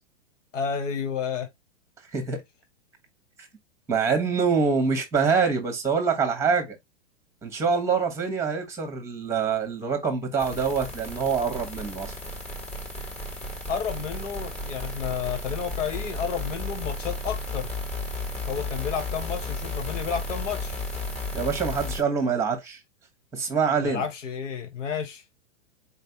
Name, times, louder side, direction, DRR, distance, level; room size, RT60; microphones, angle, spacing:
voice 1, 0.5-1.5 13.7-17.7 18.5-20.7 23.8-25.2, left 7 dB, 80° left, 1.2 m, -31 dB
voice 2, 2.1-2.4 3.4-3.5 3.9-6.8 7.4-12.1 21.3-22.8 23.3-24.1, right 5 dB, 10° right, 1.1 m, -25 dB
sound 1, 10.4-22.0, left 2 dB, 20° left, 1.4 m, -34 dB
4.3 x 3.3 x 2.7 m
hypercardioid pair, 140°, 37 cm